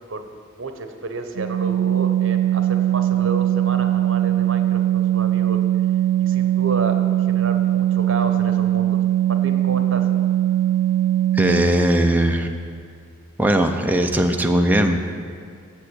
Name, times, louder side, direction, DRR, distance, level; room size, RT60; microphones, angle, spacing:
voice 1, 0.6-5.6 6.2-7.0 7.3-9.0 9.3-10.0, right 3 dB, 70° right, 6 dB, 0.8 m, -31 dB
Organ, 1.3-11.9, right 12 dB, 85° right, 0.3 m, -20 dB
voice 2, 11.3-12.5 13.4-15.0, right 1 dB, 10° right, 3 dB, 0.6 m, -19 dB
8.2 x 6.2 x 7.9 m, 2.2 s
head